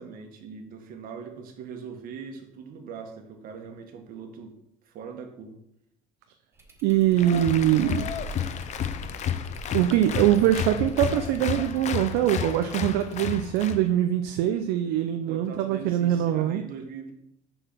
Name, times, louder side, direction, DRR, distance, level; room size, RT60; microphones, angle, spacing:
voice 1, 0.0-4.5 4.8-5.6 15.1-17.1, right 6 dB, 55° right, 4 dB, 1.7 m, -41 dB
sound 1, 6.5-13.6, right 2 dB, 15° right, 1.2 m, -46 dB
voice 2, 6.8-8.1 9.7-16.6, right 12 dB, 70° right, 7 dB, 0.6 m, -23 dB
Applause, 7.2-13.8, left 9 dB, 40° left, 0.6 m, -31 dB
6.4 x 4.8 x 6.2 m, 0.76 s
supercardioid pair, 110°, 18 cm